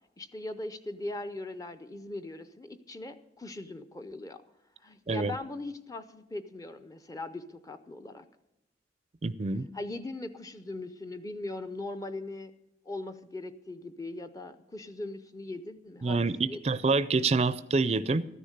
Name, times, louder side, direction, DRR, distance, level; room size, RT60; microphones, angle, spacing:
voice 1, 0.2-4.4 4.8-8.3 9.7-12.5 12.9-16.6, left 2 dB, 20° left, 9 dB, 0.5 m, -40 dB
voice 2, 9.2-9.7 16.0-18.2, right 3 dB, 35° right, 14 dB, 0.4 m, -27 dB
14.0 x 10.0 x 6.5 m, 0.92 s
head